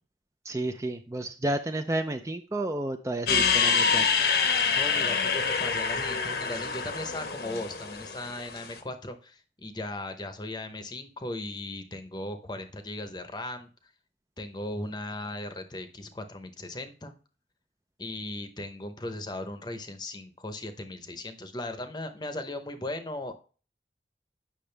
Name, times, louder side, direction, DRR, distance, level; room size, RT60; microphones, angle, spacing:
voice 1, 0.4-4.1, right 1 dB, 15° right, 7 dB, 0.4 m, -31 dB
sound 1, 3.3-8.7, left 6 dB, 60° left, 0.9 m, -26 dB
voice 2, 4.7-13.7 14.4-17.1 18.0-23.3, left 1 dB, 25° left, 8 dB, 0.8 m, -37 dB
8.7 x 6.2 x 3.3 m, 0.38 s
head